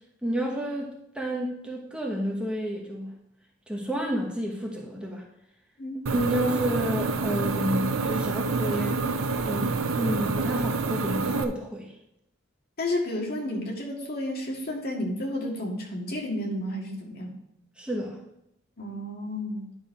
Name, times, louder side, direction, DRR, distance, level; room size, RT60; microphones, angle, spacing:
voice 1, 0.2-3.1 3.7-5.2 6.1-9.0 9.4-11.9 17.8-18.2, equal, 5° right, -1 dB, 1.3 m, -30 dB
sound 1, 6.1-11.4, right 3 dB, 90° right, 0.7 m, -27 dB
voice 2, 12.8-17.3 18.8-19.7, left 1 dB, 50° left, 0 dB, 1.9 m, -31 dB
10.5 x 4.2 x 5.2 m, 0.79 s
head